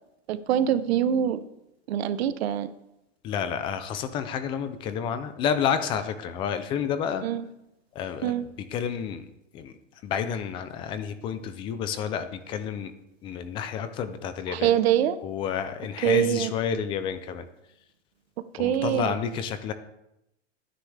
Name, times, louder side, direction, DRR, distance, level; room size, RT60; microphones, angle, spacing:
voice 1, 0.3-1.4 1.9-2.7 7.2-7.4 8.2-8.4 14.5-15.2 16.0-16.5 18.6-19.2, right 10 dB, 55° right, 13 dB, 0.9 m, -24 dB
voice 2, 3.2-7.3 7.9-8.3 8.7-9.3 9.5-9.7 10.0-12.9 13.2-14.7 15.2-17.5 18.6-19.7, left 8 dB, 15° left, 11 dB, 0.4 m, -30 dB
21.0 x 10.0 x 3.4 m, 0.86 s
supercardioid pair, 155°, 37 cm